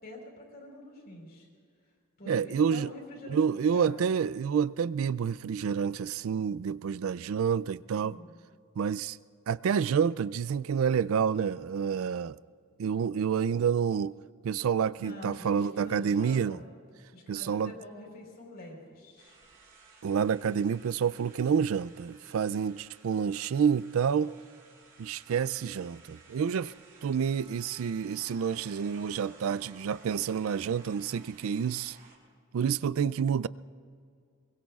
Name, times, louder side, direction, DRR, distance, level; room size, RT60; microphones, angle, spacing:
voice 1, 0.0-1.5 2.2-4.2 8.0-8.3 15.0-16.6 17.1-19.4, left 1 dB, 45° left, 4.3 m, -46 dB
voice 2, 2.3-2.9 3.3-8.2 8.8-9.2 9.5-12.4 12.8-14.2 14.4-16.6 17.3-17.7 20.0-24.3 25.0-26.7 27.0-32.0 32.5-33.5, right 7 dB, 70° right, 0.3 m, -28 dB
sound 1, 19.2-32.2, right 4 dB, 40° right, 4.0 m, -56 dB
25.0 x 23.0 x 2.4 m
head